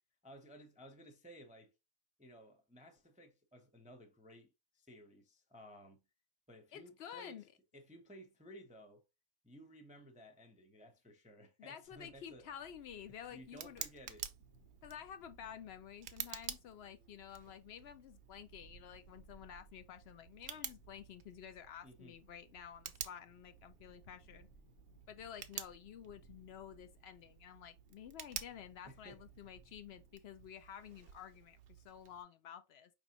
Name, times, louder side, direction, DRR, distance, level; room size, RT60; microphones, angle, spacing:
voice 1, 0.2-1.7 2.2-6.0 6.5-7.5 7.7-9.0 9.4-12.6 13.3-14.3 21.8-22.2 28.9-29.2, equal, 10° right, 0.5 m, -57 dB
voice 2, 6.7-7.4 11.6-13.8 14.8-24.5 25.1-31.6 31.8-32.9, left 9 dB, 65° left, 0.7 m, -51 dB
sound 1, 11.8-30.2, right 3 dB, 80° left, 1.7 m, -65 dB
Tick, 12.6-32.2, right 8 dB, 60° right, 0.7 m, -51 dB
5.1 x 3.4 x 2.8 m
omnidirectional pair, 1.5 m